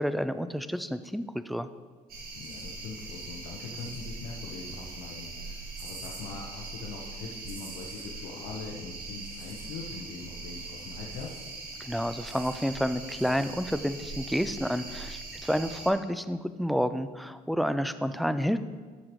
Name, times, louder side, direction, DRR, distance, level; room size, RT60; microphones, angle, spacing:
voice 1, 0.0-1.7 11.8-18.6, equal, ahead, 12 dB, 0.3 m, -29 dB
sound 1, 2.1-15.9, right 3 dB, 60° right, 1.8 m, -41 dB
voice 2, 2.3-11.3, left 4 dB, 90° left, -1 dB, 1.0 m, -42 dB
11.0 x 6.7 x 3.1 m, 1.5 s
cardioid pair, 110°, 17 cm